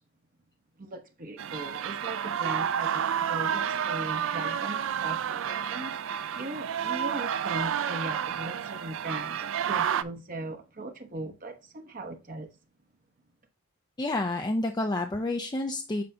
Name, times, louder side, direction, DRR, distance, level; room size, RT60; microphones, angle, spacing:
voice 1, 0.8-12.5, right 2 dB, 40° right, 0.9 m, -39 dB
sound 1, 1.4-10.0, right 8 dB, 60° right, 0.4 m, -30 dB
voice 2, 14.0-16.0, left 2 dB, 20° left, 0.4 m, -29 dB
7.7 x 5.5 x 2.7 m
head